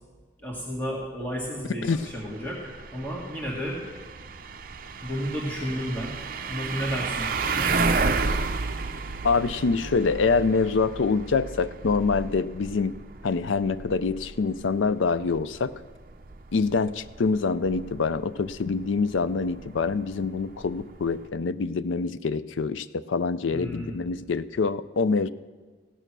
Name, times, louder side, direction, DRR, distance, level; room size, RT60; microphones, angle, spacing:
voice 1, 0.4-3.8 5.0-6.2 6.5-7.7 23.5-24.0, equal, 10° left, -3 dB, 1.9 m, -32 dB
sound 1, 1.9-21.3, right 4 dB, 50° right, 0.6 m, -33 dB
voice 2, 9.2-12.9 13.2-15.7 16.5-25.3, left 4 dB, 90° left, 15 dB, 0.5 m, -25 dB
16.0 x 9.1 x 6.1 m, 1.4 s
head